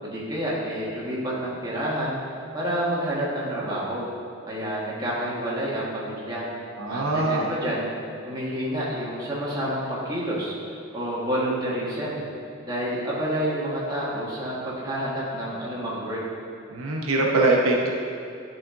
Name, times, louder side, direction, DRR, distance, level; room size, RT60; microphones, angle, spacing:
voice 1, 0.0-2.2 2.5-4.0 4.5-6.5 6.9-7.9 8.2-10.5 10.9-12.2 12.6-16.2, equal, 20° right, -7 dB, 1.5 m, -29 dB
voice 2, 6.8-7.5 16.7-17.9, right 2 dB, 85° right, -1 dB, 0.8 m, -22 dB
10.5 x 4.3 x 3.7 m, 2.5 s
head